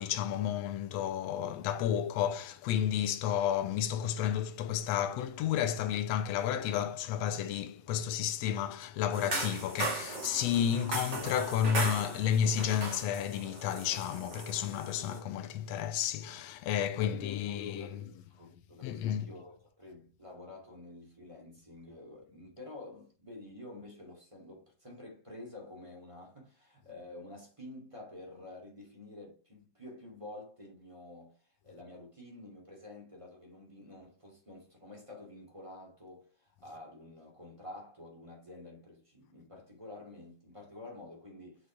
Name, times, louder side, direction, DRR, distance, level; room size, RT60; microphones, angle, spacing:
voice 1, 0.0-18.0 18.8-19.3, left 9 dB, 80° left, 1.5 m, -31 dB
sound 1, 9.1-15.2, right 2 dB, 35° right, 2.7 m, -38 dB
voice 2, 17.0-41.7, left 2 dB, 10° right, 2.7 m, -49 dB
6.5 x 6.5 x 3.6 m
omnidirectional pair, 3.7 m